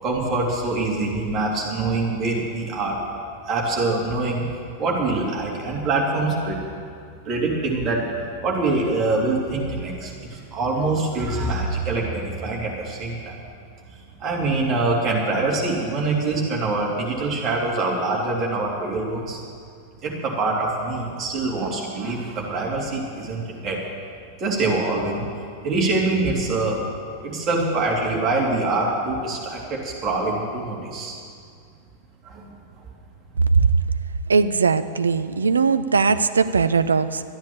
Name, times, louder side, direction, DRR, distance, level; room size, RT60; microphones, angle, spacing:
voice 1, 0.0-3.0 3.5-4.4 4.8-6.6 7.2-13.3 13.9-19.4 20.0-23.8 24.4-25.2 25.6-26.8 27.2-31.2 32.2-32.6, right 3 dB, 30° right, -2 dB, 3.1 m, -24 dB
voice 2, 34.3-37.2, right 5 dB, 75° right, 13 dB, 0.5 m, -19 dB
13.0 x 10.5 x 7.3 m, 2.3 s
figure-of-eight pair, 90°, 0 cm